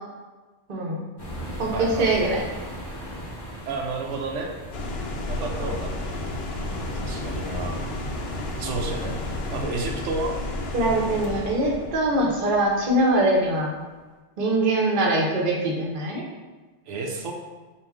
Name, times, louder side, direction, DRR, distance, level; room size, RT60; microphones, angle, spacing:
voice 1, 0.7-1.0 1.6-2.4 5.6-5.7 10.7-13.7 14.4-16.2, right 1 dB, 50° right, -2 dB, 0.8 m, -23 dB
sound 1, 1.2-9.7, equal, 25° left, 0.7 m, -38 dB
voice 2, 1.7-2.1 3.7-4.5 5.3-6.2 7.0-7.8 8.6-9.2 9.5-10.4 16.9-17.3, right 3 dB, 90° right, 1 dB, 0.9 m, -31 dB
sound 2, 4.7-13.7, left 2 dB, 65° left, 0.8 m, -32 dB
4.4 x 2.5 x 3.5 m, 1.3 s
omnidirectional pair, 1.2 m